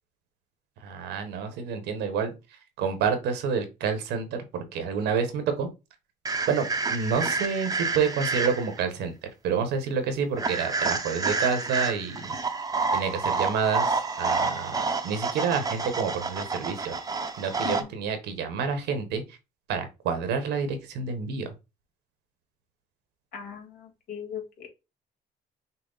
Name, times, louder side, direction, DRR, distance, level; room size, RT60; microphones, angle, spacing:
voice 1, 0.8-2.3 2.8-5.7 6.5-9.1 9.4-12.4 12.9-16.9 17.4-19.2 19.7-21.5, right 6 dB, 85° right, 1.3 m, -28 dB
sound 1, 6.3-8.8 10.4-17.8, right 4 dB, 20° right, 0.7 m, -29 dB
voice 2, 23.3-24.7, left 8 dB, 60° left, 1.8 m, -39 dB
5.9 x 2.1 x 3.9 m
cardioid pair, 110°, 17 cm